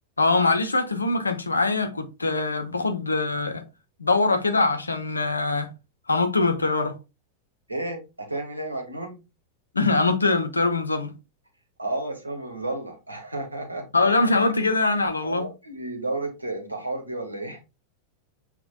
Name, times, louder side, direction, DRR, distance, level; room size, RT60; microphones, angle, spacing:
voice 1, 0.2-3.6 4.0-5.7 6.1-7.0 9.7-11.1 13.9-15.5, left 3 dB, 80° left, 0.8 m, -23 dB
voice 2, 7.7-9.2 11.8-13.9 15.2-17.6, right 2 dB, 85° right, 1.4 m, -32 dB
6.9 x 2.9 x 2.6 m
figure-of-eight pair, 90°, 0 cm